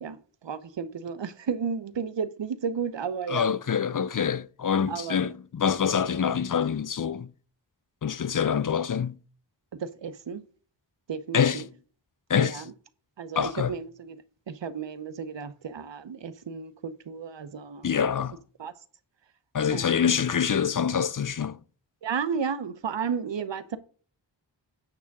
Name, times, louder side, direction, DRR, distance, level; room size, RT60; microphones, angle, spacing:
voice 1, 0.0-3.5 4.9-5.3 9.8-10.4 11.1-11.7 12.4-12.7 13.2-17.9 18.6-18.7 19.7-20.0 22.0-23.8, right 6 dB, 80° right, 0.9 m, -33 dB
voice 2, 3.3-7.3 8.0-9.2 11.3-11.7 12.3-12.6 13.4-13.7 17.8-18.4 19.5-21.6, left 7 dB, 45° left, 0.5 m, -25 dB
8.9 x 3.5 x 6.0 m
wide cardioid pair, 65°, 44 cm